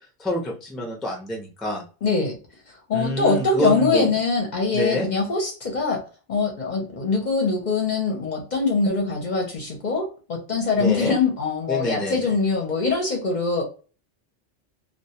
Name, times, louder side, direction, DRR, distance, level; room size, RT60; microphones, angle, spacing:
voice 1, 0.2-1.8 2.9-4.1 4.7-5.1 10.8-11.2 11.7-12.3, equal, ahead, -1 dB, 0.4 m, -26 dB
voice 2, 2.0-2.4 2.9-6.0 6.3-13.6, left 4 dB, 50° left, 1 dB, 0.6 m, -23 dB
2.2 x 2.2 x 2.7 m, 0.36 s
omnidirectional pair, 1.2 m